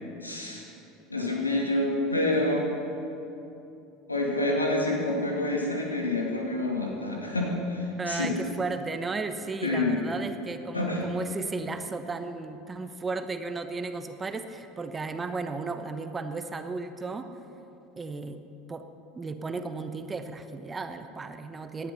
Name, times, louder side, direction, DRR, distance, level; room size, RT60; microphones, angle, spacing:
voice 1, 0.2-0.6 1.1-2.7 4.1-8.3 9.6-10.0 10.7-11.1, left 2 dB, 85° left, -1 dB, 2.4 m, -27 dB
voice 2, 8.0-17.3 18.0-18.4 18.7-18.8 19.1-21.9, right 3 dB, 20° right, 9 dB, 1.0 m, -34 dB
18.5 x 11.5 x 5.7 m, 2.9 s
figure-of-eight pair, 75°, 0 cm